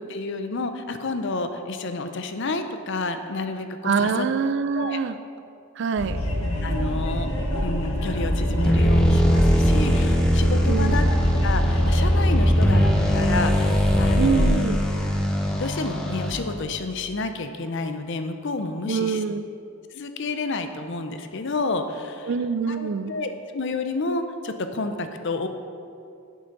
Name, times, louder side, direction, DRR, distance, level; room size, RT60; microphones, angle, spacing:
voice 1, 0.0-4.3 4.7-5.0 6.6-7.3 7.6-11.0 11.4-12.8 13.1-14.6 15.5-19.2 19.9-22.3 22.7-25.5, left 3 dB, 55° left, 8 dB, 0.6 m, -30 dB
voice 2, 3.8-5.2 5.8-6.2 10.7-11.1 14.2-14.8 18.9-19.4 22.3-23.2, right 5 dB, 55° right, 12 dB, 0.3 m, -25 dB
sound 1, 6.0-14.4, left 1 dB, 75° left, 1.6 m, -25 dB
sound 2, 8.6-16.6, equal, 5° left, 0.8 m, -21 dB
7.8 x 7.8 x 5.3 m, 2.5 s
head